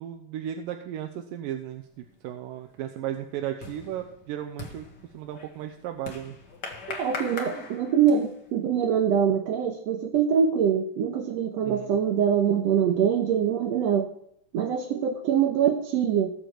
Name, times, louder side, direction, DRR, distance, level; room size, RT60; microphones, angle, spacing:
voice 1, 0.0-4.9 5.1-6.3 11.6-12.0, right 11 dB, 85° right, 6 dB, 2.5 m, -35 dB
sound 1, 2.0-2.3 2.7-8.5, left 3 dB, 40° left, 1.7 m, -40 dB
voice 2, 6.9-14.1 14.5-16.3, right 8 dB, 65° right, 3 dB, 1.7 m, -24 dB
18.5 x 7.0 x 4.6 m, 0.70 s
omnidirectional pair, 4.0 m